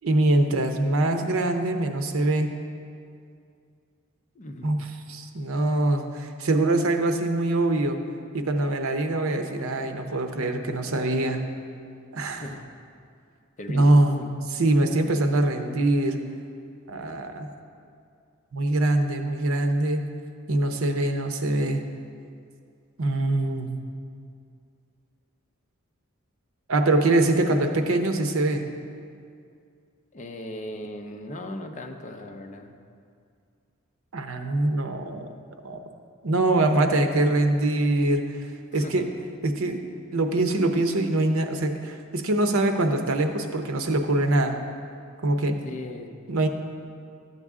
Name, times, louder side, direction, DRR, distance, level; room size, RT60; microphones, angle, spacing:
voice 1, 0.0-2.5 4.6-8.0 8.3-11.4 12.1-12.5 13.7-14.2 14.6-16.2 16.9-17.5 18.5-20.0 20.5-21.8 23.0-23.7 26.7-28.6 34.1-35.3 35.6-35.8 36.2-38.2 38.7-39.0 39.4-39.8 40.1-44.6 45.2-45.6 46.3-46.5, right 2 dB, 75° right, 5 dB, 0.7 m, -23 dB
voice 2, 4.3-4.8 12.3-12.7 13.6-14.3 30.1-32.8 38.7-39.1 45.6-46.1, left 1 dB, 35° left, 4 dB, 0.7 m, -37 dB
13.0 x 8.1 x 3.6 m, 2.3 s
head